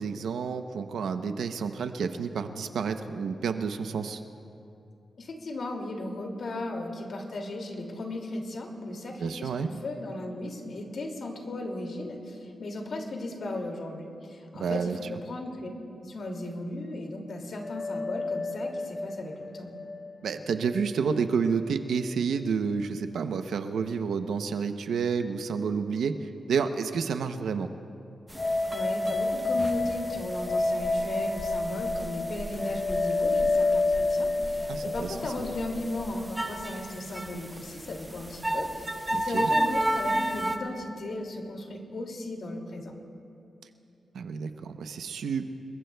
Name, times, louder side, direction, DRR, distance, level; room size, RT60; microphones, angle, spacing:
voice 1, 0.0-4.2 9.2-9.7 14.5-15.0 20.2-27.7 34.7-35.2 39.1-39.5 44.1-45.5, right 6 dB, 80° right, 8 dB, 0.7 m, -30 dB
voice 2, 5.2-15.7 16.0-19.7 28.7-42.9, left 2 dB, 50° left, 1 dB, 2.4 m, -36 dB
sound 1, 17.6-20.8 21.1-21.2 28.4-36.3, left 3 dB, 20° left, 0.6 m, -29 dB
sound 2, 28.3-40.6, right 1 dB, 10° right, 0.9 m, -34 dB
29.5 x 21.5 x 2.3 m, 2.7 s
wide cardioid pair, 160°, 0 cm